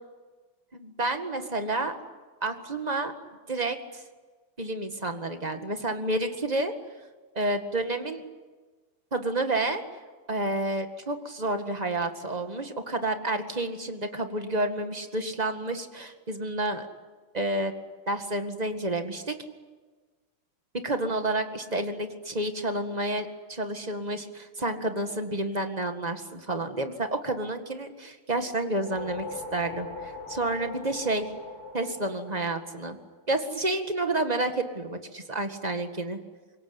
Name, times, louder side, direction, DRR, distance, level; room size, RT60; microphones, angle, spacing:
voice 1, 0.7-1.9 2.4-3.1 3.5-4.0 4.6-6.7 7.3-8.2 9.1-9.8 10.3-16.9 17.3-17.7 18.1-19.4 20.7-31.3 31.7-33.0 33.3-36.2, right 2 dB, 20° right, 6 dB, 1.8 m, -30 dB
sound 1, 28.6-33.2, left 3 dB, 75° left, 6.8 m, -41 dB
26.0 x 23.0 x 9.7 m, 1.3 s
omnidirectional pair, 2.4 m